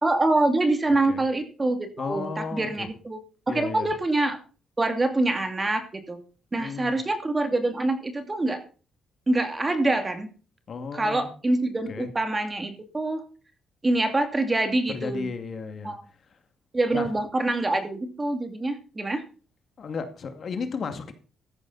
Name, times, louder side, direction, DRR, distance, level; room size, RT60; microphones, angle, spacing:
voice 1, 0.0-3.2 3.5-4.4 4.8-6.2 6.5-8.6 9.3-10.3 10.9-13.2 13.8-15.3 15.8-16.0 16.7-19.2, right 2 dB, 25° right, 7 dB, 2.6 m, -25 dB
voice 2, 0.9-1.2 2.0-2.9 3.5-3.9 6.6-7.0 10.7-11.3 11.9-12.1 14.9-16.0 16.3-16.4 16.9-17.1 19.8-21.1, left 5 dB, 50° left, 7 dB, 2.2 m, -34 dB
14.0 x 10.5 x 4.1 m, 0.36 s
cardioid pair, 90°, 0 cm